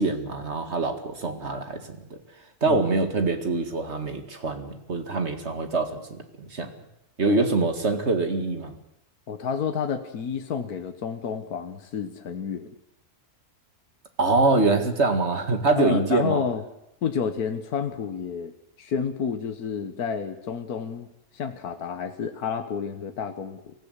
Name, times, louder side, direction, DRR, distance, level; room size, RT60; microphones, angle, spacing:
voice 1, 0.0-2.2 2.6-6.7 7.2-8.7 14.2-16.4, right 3 dB, 45° right, 6 dB, 2.4 m, -24 dB
voice 2, 9.3-12.7 15.8-16.6 17.0-18.5 18.8-21.1 21.3-23.7, left 6 dB, 85° left, 7 dB, 1.7 m, -30 dB
24.0 x 15.5 x 8.1 m, 0.80 s
omnidirectional pair, 1.6 m